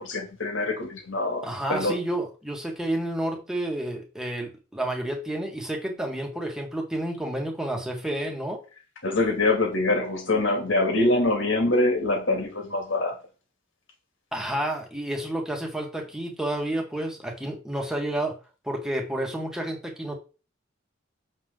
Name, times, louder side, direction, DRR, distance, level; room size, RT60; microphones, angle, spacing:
voice 1, 0.0-1.9 9.0-13.1, left 2 dB, 65° left, 2.4 m, -24 dB
voice 2, 1.4-8.6 14.3-20.1, right 1 dB, 5° right, 1.7 m, -30 dB
7.4 x 6.1 x 3.8 m
head